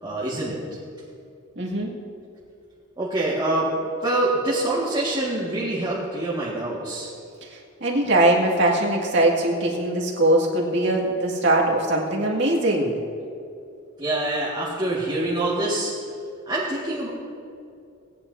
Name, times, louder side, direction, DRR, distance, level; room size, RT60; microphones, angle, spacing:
voice 1, 0.0-0.6 3.0-3.7 4.0-7.1 14.0-15.9 16.5-17.1, right 2 dB, 20° right, -7 dB, 1.7 m, -25 dB
voice 2, 1.6-1.9 7.4-12.9, right 1 dB, 60° right, -2 dB, 2.1 m, -21 dB
18.5 x 10.0 x 2.7 m, 2.6 s
head